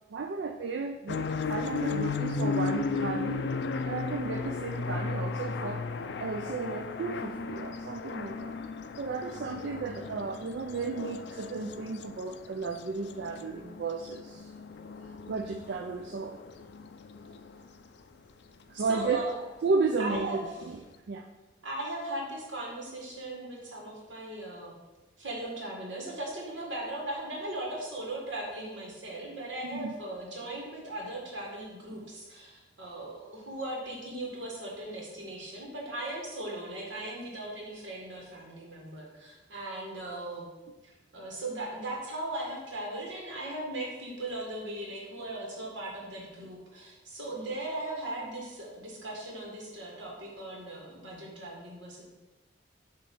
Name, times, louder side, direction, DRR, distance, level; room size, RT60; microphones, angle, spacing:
voice 1, 0.1-3.5 3.8-5.9 6.2-8.5 9.0-14.5 15.3-16.4 18.7-19.3 19.6-20.8 21.1-21.3 29.6-29.9, right 4 dB, 65° right, 5 dB, 0.4 m, -33 dB
sound 1, 1.1-17.8, left 4 dB, 65° left, 0.4 m, -35 dB
voice 2, 18.8-19.4 20.0-20.4 21.6-24.7 25.2-40.5 40.8-52.0, right 1 dB, 85° right, -2 dB, 1.9 m, -38 dB
7.1 x 3.1 x 5.5 m, 1.1 s
head